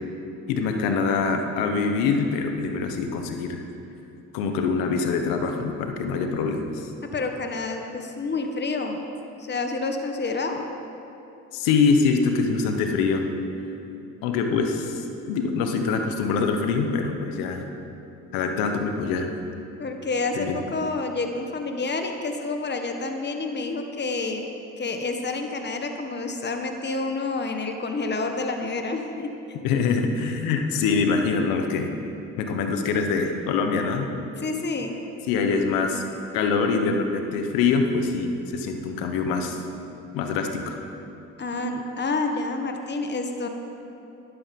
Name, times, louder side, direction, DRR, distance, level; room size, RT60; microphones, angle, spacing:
voice 1, 0.5-3.6 4.3-6.9 11.5-13.3 14.2-17.6 18.3-19.3 20.3-20.6 29.6-31.9 32.4-34.1 35.3-36.0 36.3-39.6 40.1-40.8, left 5 dB, 85° left, 5 dB, 1.2 m, -24 dB
voice 2, 7.1-9.1 9.4-10.6 19.8-24.5 24.8-29.3 34.4-35.0 41.4-43.5, left 3 dB, 30° left, 5 dB, 1.4 m, -28 dB
13.5 x 11.0 x 5.3 m, 2.8 s
supercardioid pair, 60°, 34 cm